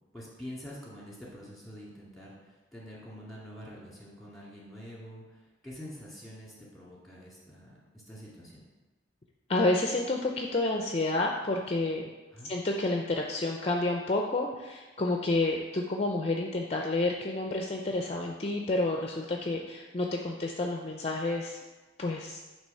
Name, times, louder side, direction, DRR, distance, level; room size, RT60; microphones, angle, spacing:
voice 1, 0.1-8.6 12.3-12.5, equal, ahead, -6 dB, 2.2 m, -46 dB
voice 2, 9.5-12.1 12.4-21.6 22.0-22.4, left 2 dB, 35° left, 1 dB, 0.5 m, -29 dB
9.4 x 3.2 x 5.5 m, 1.2 s
head